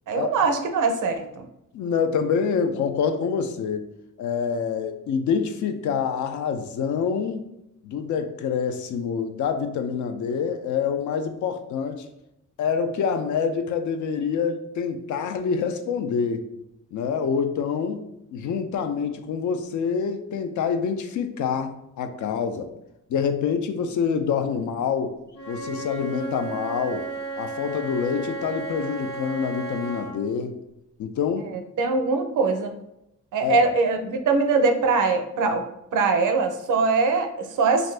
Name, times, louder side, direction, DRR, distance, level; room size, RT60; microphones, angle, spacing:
voice 1, 0.1-1.4 31.4-31.5 31.8-32.7 33.3-35.6 35.9-37.9, right 4 dB, 80° right, 6 dB, 0.5 m, -22 dB
voice 2, 1.7-3.8 4.2-7.4 7.8-12.1 12.6-16.4 16.9-18.0 18.3-22.7 23.1-25.1 25.5-27.0 27.4-30.6 31.0-31.5 33.4-33.6, left 6 dB, 70° left, 7 dB, 0.4 m, -26 dB
Wind instrument woodwind instrument, 25.3-30.1, right 3 dB, 35° left, 0.8 m, -34 dB
2.6 x 2.5 x 3.2 m, 0.85 s
cardioid pair, 105°, 31 cm